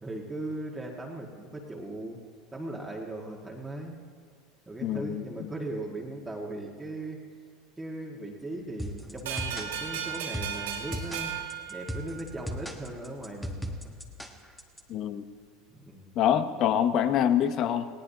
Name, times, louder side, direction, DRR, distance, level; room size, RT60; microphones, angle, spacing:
voice 1, 0.0-2.2 2.5-4.0 4.7-7.2 7.8-11.4 11.7-13.7 15.7-16.1, right 2 dB, 10° right, -2 dB, 1.8 m, -38 dB
voice 2, 4.8-5.2 14.9-15.3 16.2-17.9, left 9 dB, 50° left, 11 dB, 0.9 m, -25 dB
sound 1, 8.8-14.8, equal, 5° left, 1.4 m, -37 dB
sound 2, 9.3-12.5, right 8 dB, 80° right, 3.2 m, -36 dB
18.5 x 18.0 x 2.9 m, 2.1 s
hypercardioid pair, 90°, 0 cm